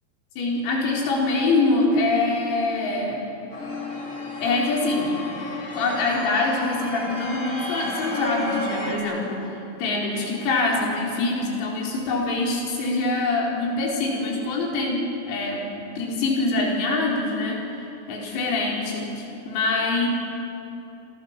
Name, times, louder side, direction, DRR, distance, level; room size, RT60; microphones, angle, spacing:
voice 1, 0.4-3.3 4.4-5.1 5.7-9.5 9.8-15.0 15.3-15.6 16.0-17.6 18.1-20.1, left 3 dB, 90° left, -2 dB, 7.1 m, -24 dB
sound 1, 3.5-9.0, left 2 dB, 20° left, 3.8 m, -33 dB
29.0 x 24.0 x 7.4 m, 3.0 s
omnidirectional pair, 6.0 m